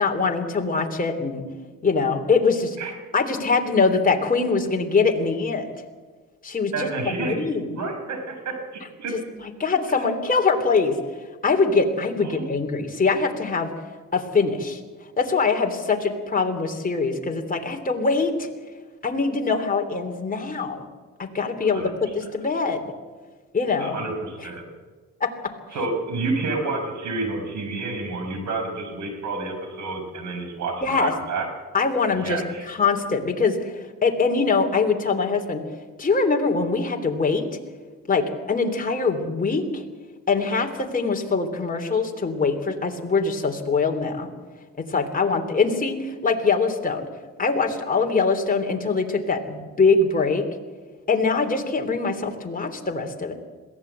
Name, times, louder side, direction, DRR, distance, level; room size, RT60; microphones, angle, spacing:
voice 1, 0.0-1.4 1.8-2.8 3.1-5.7 6.4-6.9 7.2-7.8 9.1-11.0 11.4-13.7 14.1-14.8 15.2-18.5 19.0-20.8 21.2-22.9 23.5-24.0 25.2-25.3 30.8-31.2 31.7-35.6 36.0-37.5 38.1-39.8 40.3-44.3 44.8-47.1 47.4-50.4 51.1-53.3, left 4 dB, 30° left, 3 dB, 3.3 m, -23 dB
voice 2, 6.7-7.4 7.8-9.1 12.2-12.4 21.7-21.9 23.8-24.6 25.7-31.5 32.1-32.6, right 3 dB, 70° right, 5 dB, 5.8 m, -29 dB
21.5 x 16.0 x 8.2 m, 1.4 s
cardioid pair, 90°, 30 cm